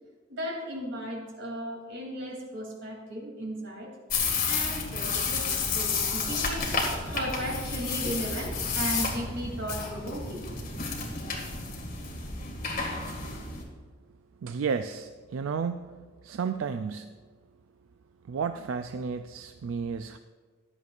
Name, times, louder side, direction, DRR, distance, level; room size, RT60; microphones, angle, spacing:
voice 1, 0.3-3.9 4.4-10.4, equal, 65° right, -1 dB, 2.9 m, -36 dB
sound 1, 4.1-13.6, left 4 dB, 50° left, 2.0 m, -31 dB
voice 2, 14.4-15.9 16.2-17.1 18.3-20.2, right 6 dB, 90° right, 9 dB, 0.4 m, -32 dB
14.5 x 11.0 x 2.5 m, 1.4 s
head